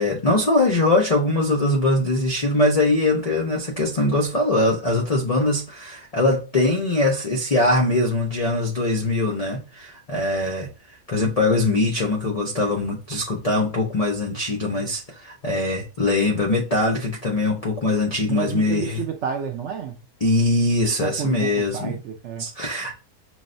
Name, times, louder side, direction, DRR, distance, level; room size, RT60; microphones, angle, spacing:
voice 1, 0.0-10.7 11.1-19.0 20.2-22.0 22.4-22.9, left 2 dB, 85° left, 0.3 m, -22 dB
voice 2, 18.3-20.0 20.8-22.5, right 7 dB, 70° right, 0.7 m, -30 dB
6.1 x 2.1 x 2.5 m
omnidirectional pair, 1.6 m